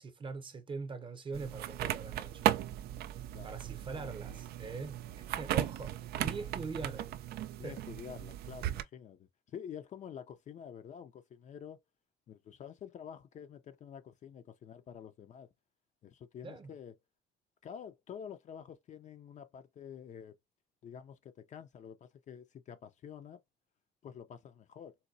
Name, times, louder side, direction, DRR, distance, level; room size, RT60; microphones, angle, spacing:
voice 1, 0.0-2.5 3.4-7.0 7.6-7.8 16.4-16.7, right 4 dB, 30° right, 0.7 m, -42 dB
sound 1, 1.3-8.8, right 12 dB, 70° right, 0.4 m, -36 dB
voice 2, 3.3-4.4 6.2-6.3 7.6-11.8 12.3-15.5 16.0-17.0 17.6-20.4 20.8-23.4 24.0-25.0, left 8 dB, 45° left, 0.5 m, -48 dB
4.0 x 2.2 x 2.6 m
cardioid pair, 110°, 17 cm